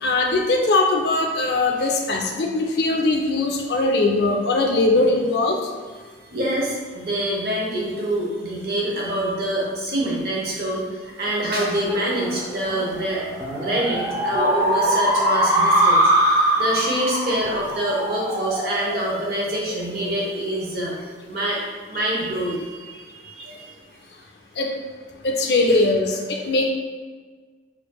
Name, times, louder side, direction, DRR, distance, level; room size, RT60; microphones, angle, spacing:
voice 1, 0.0-5.6 24.6-24.7 25.2-26.7, left 2 dB, 55° left, 1 dB, 0.4 m, -20 dB
voice 2, 6.3-13.2 13.5-21.6 21.9-23.7, right 1 dB, 50° right, -3 dB, 0.7 m, -26 dB
sound 1, 11.3-20.1, right 1 dB, 15° right, 0.4 m, -23 dB
4.5 x 2.5 x 2.3 m, 1.5 s
head